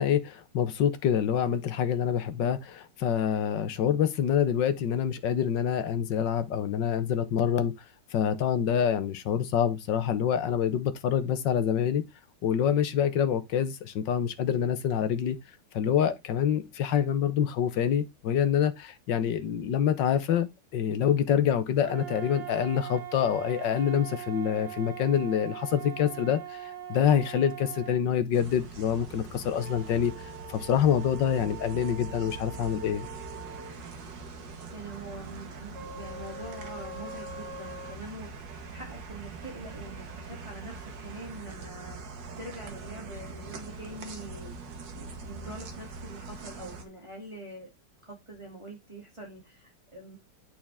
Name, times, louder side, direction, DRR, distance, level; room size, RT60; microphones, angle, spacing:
voice 1, 0.0-7.7 8.1-12.0 12.4-15.4 15.7-30.1 30.5-33.1, left 8 dB, 85° left, 1.7 m, -26 dB
sound 1, 21.8-28.0 29.6-33.8 35.7-38.0, right 6 dB, 70° right, 1.8 m, -42 dB
sound 2, 28.3-46.8, right 4 dB, 85° right, 2.2 m, -43 dB
voice 2, 34.7-42.0 42.4-44.5 44.9-47.7 48.0-50.2, right 1 dB, 15° right, 2.7 m, -44 dB
8.9 x 5.8 x 3.5 m
omnidirectional pair, 1.9 m